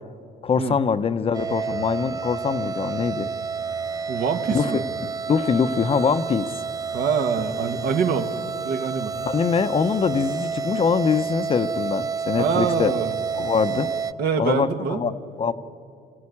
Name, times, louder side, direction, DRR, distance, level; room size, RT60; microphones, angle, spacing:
voice 1, 0.4-3.3 4.5-4.7 5.3-6.5 9.3-12.9 13.4-13.9 14.4-15.1 15.4-15.5, left 6 dB, 35° left, 11 dB, 0.8 m, -23 dB
sound 1, 1.3-14.1, right 5 dB, 20° right, 0.5 m, -30 dB
voice 2, 4.1-4.9 6.9-8.3 8.6-9.1 12.4-13.1 14.2-15.0, right 6 dB, 65° right, 6 dB, 1.7 m, -25 dB
25.5 x 16.0 x 8.6 m, 2.5 s
cardioid pair, 110°, 17 cm